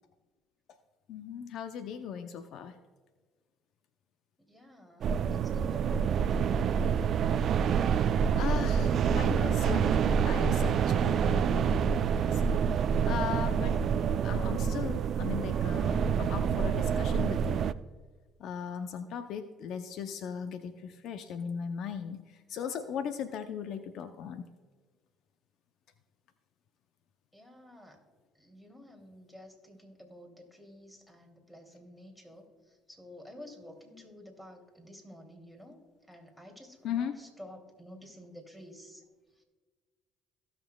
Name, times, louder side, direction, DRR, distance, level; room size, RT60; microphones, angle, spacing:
voice 1, 1.1-2.8 8.0-13.8 14.2-17.6 18.4-24.4 36.8-37.2, left 7 dB, 65° left, 9 dB, 0.6 m, -38 dB
voice 2, 4.5-6.6 27.3-28.0 28.3-35.8 36.1-39.0 39.4-39.5, equal, 5° left, 3 dB, 2.8 m, -51 dB
sound 1, 5.0-17.7, right 7 dB, 55° right, 0.4 m, -27 dB
17.0 x 6.7 x 2.3 m, 1.4 s
hypercardioid pair, 65°, 0 cm